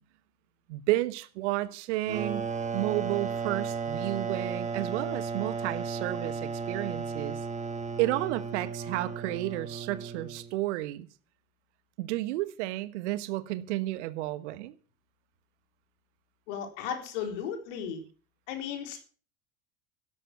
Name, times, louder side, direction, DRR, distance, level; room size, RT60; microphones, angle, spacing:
voice 1, 0.7-7.4 8.0-11.1 12.0-14.7, right 17 dB, 55° right, 1.2 m, -32 dB
sound 1, 2.1-10.5, right 5 dB, 15° right, 2.2 m, -34 dB
voice 2, 16.5-18.0 18.5-19.0, left 8 dB, 55° left, 4.1 m, -35 dB
13.0 x 11.5 x 6.0 m
figure-of-eight pair, 80°, 42 cm